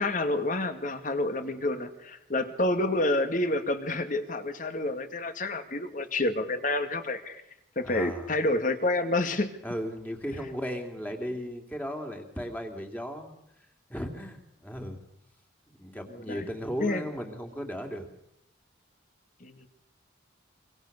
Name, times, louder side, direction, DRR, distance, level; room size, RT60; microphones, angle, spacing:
voice 1, 0.0-7.4 7.8-9.5 16.1-16.5 16.8-17.0 19.4-19.7, left 2 dB, 40° left, 8 dB, 2.3 m, -29 dB
voice 2, 7.8-8.3 9.6-13.3 13.9-15.0 15.8-18.1, equal, 10° left, 3 dB, 2.8 m, -36 dB
25.5 x 25.0 x 6.8 m, 0.80 s
head